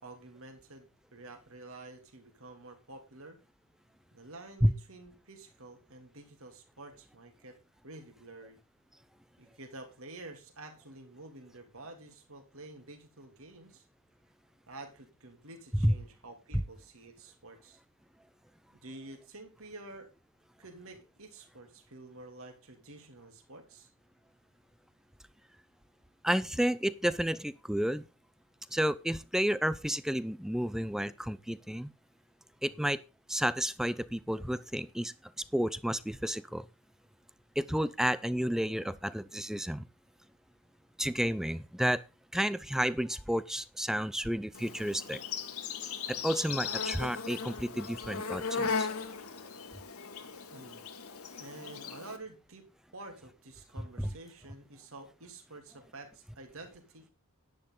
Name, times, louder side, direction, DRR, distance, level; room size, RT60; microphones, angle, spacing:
voice 1, 0.0-3.4 4.1-7.6 7.8-8.6 9.4-13.8 14.7-17.8 18.7-20.1 20.6-23.9 32.6-32.9 50.5-50.8 51.4-52.7 52.9-57.1, right 2 dB, 65° right, 5 dB, 3.0 m, -49 dB
voice 2, 26.2-28.0 28.7-31.9 32.6-33.0 33.3-35.1 35.5-36.6 37.6-39.8 41.0-42.0 42.3-45.2 46.1-48.9 54.0-54.1, equal, ahead, 16 dB, 0.5 m, -31 dB
Insect, 44.5-52.2, left 5 dB, 70° left, 1.8 m, -37 dB
10.5 x 9.9 x 3.9 m, 0.29 s
head